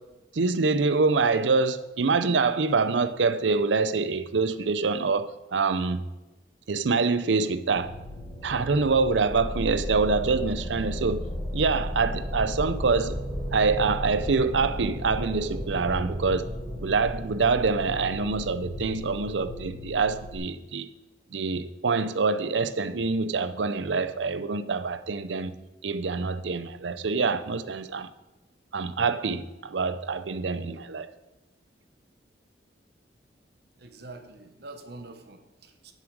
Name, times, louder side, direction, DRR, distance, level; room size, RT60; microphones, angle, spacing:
voice 1, 0.3-6.0 6.7-7.9 8.4-11.3 11.5-13.2 13.5-16.5 16.8-20.9 21.3-25.6 25.8-28.1 28.7-31.1, right 4 dB, 85° right, 0.6 m, -25 dB
sound 1, 7.7-20.4, equal, 20° left, 1.6 m, -34 dB
voice 2, 33.8-35.9, right 2 dB, 60° right, 1.1 m, -45 dB
9.9 x 7.3 x 4.7 m
head